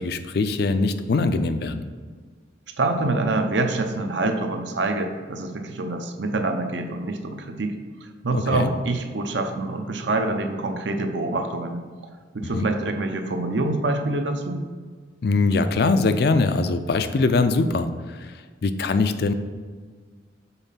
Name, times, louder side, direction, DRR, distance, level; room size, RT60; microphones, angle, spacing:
voice 1, 0.0-1.9 8.3-8.7 12.5-12.7 15.2-18.3 18.6-19.3, left 3 dB, 55° left, 10 dB, 0.4 m, -22 dB
voice 2, 2.8-7.7 8.0-11.8 12.3-14.6, right 2 dB, 75° right, 5 dB, 0.7 m, -26 dB
5.6 x 4.1 x 5.6 m, 1.5 s
head